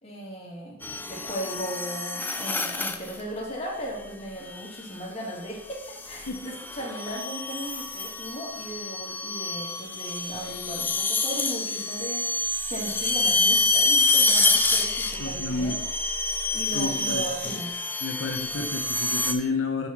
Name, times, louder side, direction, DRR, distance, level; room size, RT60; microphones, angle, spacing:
voice 1, 0.0-0.8 1.1-15.7 16.5-17.8, equal, 30° left, -4 dB, 2.2 m, -36 dB
sound 1, 0.8-3.2 4.6-5.0 5.8-19.3, left 3 dB, 10° left, 0.4 m, -27 dB
voice 2, 15.2-15.8 16.7-17.2 18.0-19.9, left 3 dB, 80° left, 2 dB, 0.9 m, -30 dB
6.3 x 5.4 x 5.8 m, 0.85 s
head